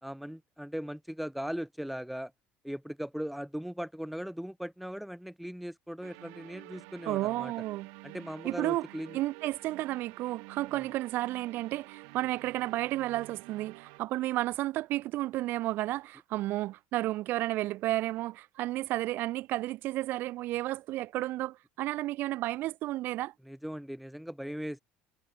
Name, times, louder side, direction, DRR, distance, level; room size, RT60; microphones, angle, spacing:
voice 1, 0.0-2.3 2.6-7.5 8.0-9.2 10.7-10.8 23.5-24.8, equal, ahead, 3.3 m, -39 dB
sound 1, 6.0-14.0, right 40 dB or more, 80° right, 6.9 m, -50 dB
voice 2, 7.1-7.9 8.4-8.9 9.1-23.3, right 16 dB, 50° right, 6.5 m, -32 dB
cardioid pair, 165°, 5 cm